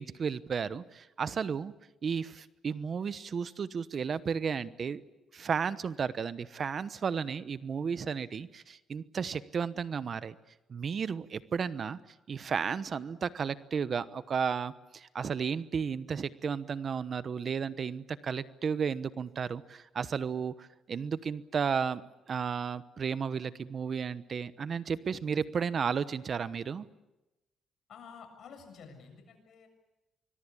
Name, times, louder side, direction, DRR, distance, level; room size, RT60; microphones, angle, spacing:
voice 1, 0.0-1.7 2.0-5.0 5.3-10.3 10.7-12.0 12.3-22.0 22.3-26.8, right 6 dB, 50° right, 15 dB, 1.0 m, -33 dB
voice 2, 27.9-29.7, left 6 dB, 65° left, 6 dB, 7.2 m, -50 dB
25.0 x 22.0 x 8.5 m, 1.0 s
cardioid pair, 90°, 0 cm